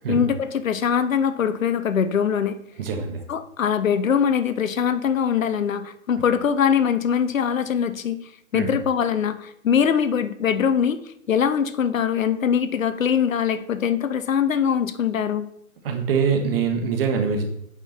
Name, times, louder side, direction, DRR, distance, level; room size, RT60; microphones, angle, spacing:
voice 1, 0.1-2.6 3.3-8.2 8.5-11.0 11.3-15.5, left 7 dB, 70° left, 13 dB, 0.7 m, -22 dB
voice 2, 2.8-3.2 8.5-8.7 15.8-17.4, right 6 dB, 45° right, 4 dB, 1.5 m, -23 dB
8.2 x 5.2 x 4.3 m, 0.76 s
figure-of-eight pair, 135°, 42 cm